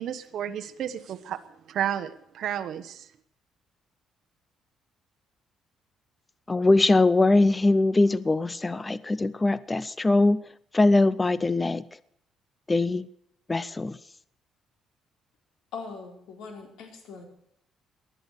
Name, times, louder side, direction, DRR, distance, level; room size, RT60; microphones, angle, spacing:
voice 1, 0.0-1.4 1.7-3.1, right 10 dB, 55° right, 1.2 m, -32 dB
voice 2, 6.5-10.4 10.7-11.8 12.7-13.1 13.5-14.0, left 2 dB, 15° left, 0.5 m, -22 dB
voice 3, 15.7-17.2, left 4 dB, 85° left, 4.2 m, -41 dB
19.5 x 11.0 x 6.7 m
cardioid pair, 160°, 0 cm